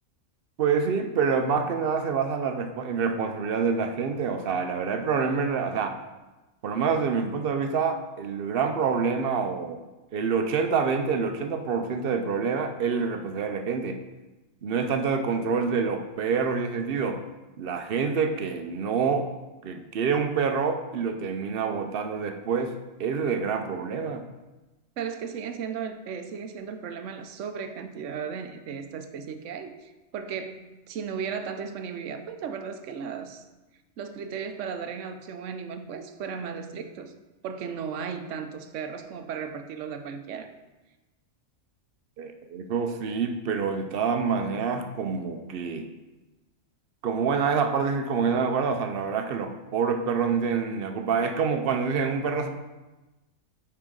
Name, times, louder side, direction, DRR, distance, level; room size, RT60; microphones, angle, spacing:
voice 1, 0.6-6.0 6.6-9.8 10.1-14.0 14.6-17.2 17.6-19.3 19.6-24.2 42.2-45.9 47.0-52.5, right 5 dB, 55° right, 6 dB, 0.8 m, -27 dB
voice 2, 25.0-33.5 34.0-37.1 37.4-40.5, right 6 dB, 80° right, 8 dB, 1.0 m, -35 dB
9.1 x 4.3 x 3.8 m, 1.1 s
omnidirectional pair, 1.3 m